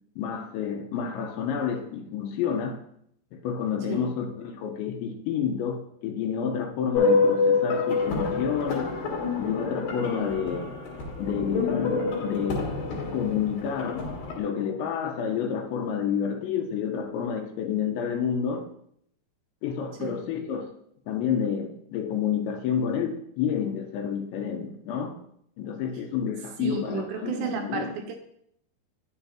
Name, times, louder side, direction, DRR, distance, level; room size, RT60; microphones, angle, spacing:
voice 1, 0.2-2.8 3.3-8.9 9.4-10.7 11.2-12.6 13.1-14.1 14.4-18.7 19.6-20.7 21.1-25.2 25.6-28.0, left 7 dB, 80° left, 5 dB, 3.0 m, -29 dB
sound 1, 6.9-14.4, left 4 dB, 60° left, 3.2 m, -27 dB
voice 2, 26.6-28.2, right 6 dB, 75° right, 4 dB, 2.8 m, -32 dB
10.0 x 7.0 x 2.9 m, 0.70 s
omnidirectional pair, 5.4 m